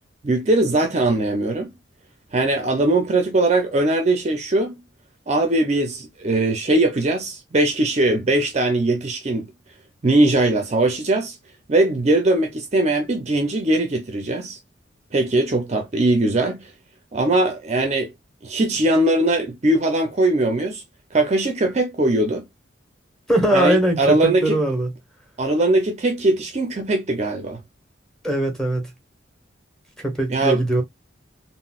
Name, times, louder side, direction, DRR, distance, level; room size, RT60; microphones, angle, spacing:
voice 1, 0.2-1.7 2.3-4.7 5.3-9.5 10.0-11.3 11.7-14.6 15.1-16.7 17.1-18.1 18.4-20.8 21.1-22.4 23.5-24.6 25.4-27.6 30.3-30.6, right 2 dB, 35° right, 0.5 m, -20 dB
voice 2, 23.3-24.9 28.2-28.9 30.0-30.8, right 1 dB, 5° left, 1.0 m, -21 dB
3.8 x 2.1 x 2.3 m
head